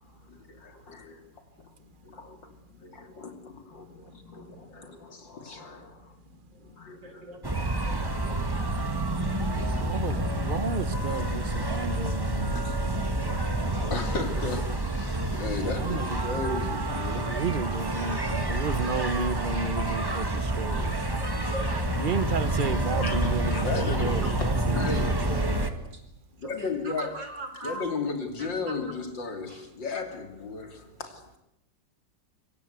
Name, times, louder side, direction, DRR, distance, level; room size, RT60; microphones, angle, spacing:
voice 1, 0.0-7.5 9.1-10.4 10.7-11.5 12.0-17.6 23.0-25.6 26.4-27.2 27.6-31.4, left 4 dB, 90° left, 3.8 m, -37 dB
voice 2, 7.0-7.5 7.8-8.6 13.7-13.9 18.2-18.3 18.9-19.5 20.1-20.2 21.2-21.9 22.5-22.6 23.0-23.1 24.2-24.3 26.4-26.5 26.9-27.8 28.4-28.5, right 1 dB, 90° right, 5.1 m, -40 dB
sound 1, 7.4-25.7, right 1 dB, 15° right, 1.7 m, -28 dB
voice 3, 9.5-12.5 13.0-13.9 15.8-16.1 17.1-21.0 22.0-25.7, right 4 dB, 35° right, 1.1 m, -33 dB
26.0 x 23.5 x 8.2 m
omnidirectional pair, 1.9 m